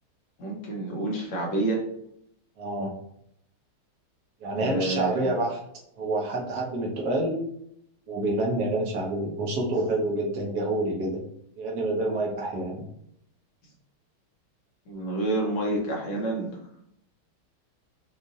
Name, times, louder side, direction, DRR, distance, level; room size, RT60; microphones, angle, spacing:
voice 1, 0.4-1.8 4.6-5.3 14.9-16.5, right 2 dB, 65° left, -2 dB, 1.7 m, -28 dB
voice 2, 2.6-2.9 4.4-5.6 6.0-7.4 8.1-11.2 11.6-12.8, right 2 dB, 60° right, -1 dB, 1.2 m, -27 dB
6.2 x 2.6 x 2.7 m, 0.72 s
omnidirectional pair, 2.3 m